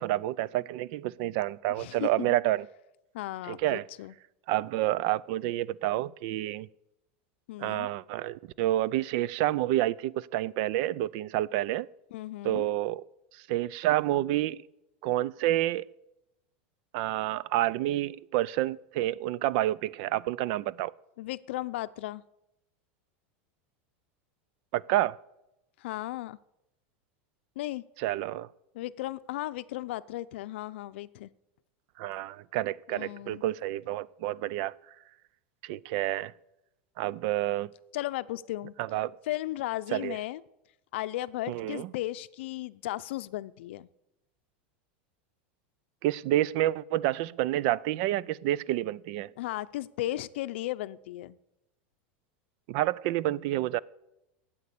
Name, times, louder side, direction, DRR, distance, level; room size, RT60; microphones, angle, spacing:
voice 1, 0.0-2.7 3.5-3.8 4.5-6.7 7.6-11.9 12.4-13.0 13.3-14.6 15.0-15.9 16.9-20.9 24.7-25.2 28.0-28.5 32.0-34.7 35.6-36.3 37.0-37.7 38.8-39.2 39.9-40.2 41.5-41.9 46.0-49.3 52.7-53.8, right 14 dB, 55° right, 0.4 m, -29 dB
voice 2, 1.8-2.3 3.1-4.1 7.5-7.9 12.1-12.7 21.2-22.2 25.8-26.4 27.6-27.9 28.7-31.3 32.9-33.4 37.9-38.7 39.3-40.4 40.9-43.9 49.4-51.4, left 15 dB, 75° left, 0.6 m, -35 dB
12.5 x 8.7 x 8.3 m
supercardioid pair, 155°, 6 cm